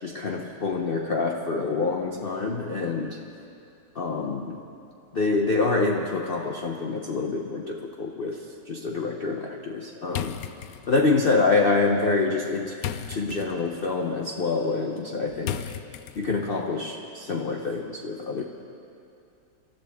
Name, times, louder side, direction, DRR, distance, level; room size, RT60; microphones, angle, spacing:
voice 1, 0.0-3.2 3.9-4.6 5.1-10.4 10.9-12.8 13.1-15.7 16.2-18.4, left 3 dB, 45° left, 1 dB, 0.8 m, -26 dB
sound 1, 10.1-16.6, left 10 dB, 70° left, 1.0 m, -38 dB
27.0 x 13.0 x 3.6 m, 2.6 s
omnidirectional pair, 1.7 m